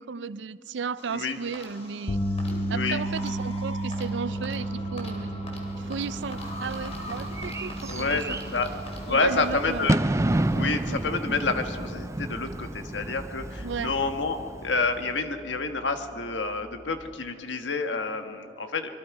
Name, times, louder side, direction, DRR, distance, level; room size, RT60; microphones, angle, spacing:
voice 1, 0.0-2.2 2.7-5.4 5.8-8.4 9.1-9.9 13.6-14.0, right 5 dB, 80° right, 17 dB, 0.5 m, -34 dB
sound 1, 1.0-11.2, left 1 dB, 35° left, 3.1 m, -42 dB
sound 2, 2.1-14.3 14.7-14.9 17.1-17.2, right 1 dB, 20° left, 1.0 m, -34 dB
voice 2, 2.4-3.1 7.8-8.7 9.1-10.0 10.5-18.9, left 3 dB, 85° left, 7 dB, 1.4 m, -29 dB
Bird / Fireworks, 5.9-15.1, right 1 dB, 15° right, 0.4 m, -31 dB
25.0 x 22.0 x 4.8 m, 2.5 s
head